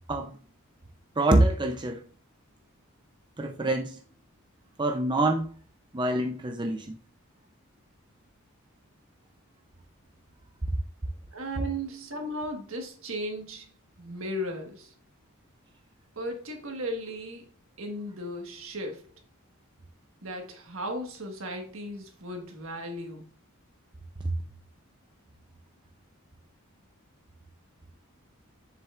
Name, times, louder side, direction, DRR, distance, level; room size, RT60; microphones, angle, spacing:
voice 1, 1.2-2.1 3.4-4.0 4.8-5.6 5.9-7.0 24.2-24.3, right 2 dB, 20° right, 0.5 m, -25 dB
voice 2, 11.3-13.7 14.0-14.9 16.1-17.5 17.8-19.1 20.2-23.3, equal, 70° right, 1.6 m, -36 dB
7.3 x 6.6 x 2.5 m
head